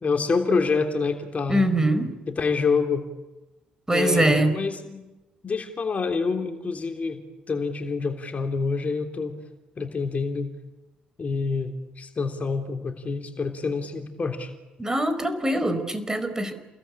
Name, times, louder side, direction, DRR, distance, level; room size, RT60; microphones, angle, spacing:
voice 1, 0.0-1.7 2.3-3.1 3.9-5.0 5.4-7.2 7.5-9.4 9.8-10.5 11.2-14.5, left 4 dB, 35° left, 5 dB, 3.2 m, -27 dB
voice 2, 1.5-2.1 3.9-4.6 14.8-16.5, right 1 dB, 15° right, 10 dB, 4.6 m, -23 dB
29.5 x 21.5 x 8.8 m, 1.1 s
figure-of-eight pair, 45°, 4 cm